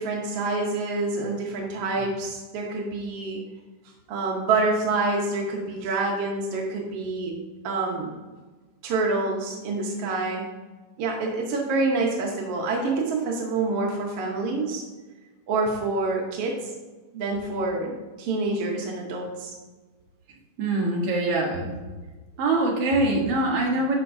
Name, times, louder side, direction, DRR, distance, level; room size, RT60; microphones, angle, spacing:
voice 1, 0.0-3.4 4.1-7.3 7.6-8.1 8.8-10.5 11.0-14.8 15.5-16.6 17.1-19.5, right 3 dB, 75° right, 0 dB, 1.3 m, -27 dB
voice 2, 20.6-21.8 22.4-24.0, right 2 dB, 55° right, -1 dB, 1.9 m, -23 dB
12.5 x 5.1 x 2.6 m, 1.3 s
omnidirectional pair, 4.0 m